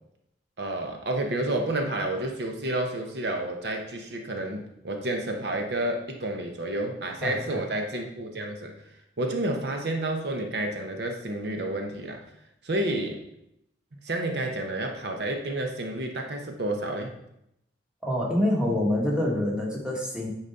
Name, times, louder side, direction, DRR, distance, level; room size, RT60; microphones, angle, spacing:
voice 1, 0.6-8.7 9.2-12.2 12.6-13.2 14.0-17.1, right 1 dB, 60° right, 3 dB, 0.9 m, -30 dB
voice 2, 7.2-7.6 18.0-20.3, left 1 dB, 5° right, -3 dB, 1.4 m, -26 dB
9.9 x 4.1 x 4.0 m, 0.80 s
head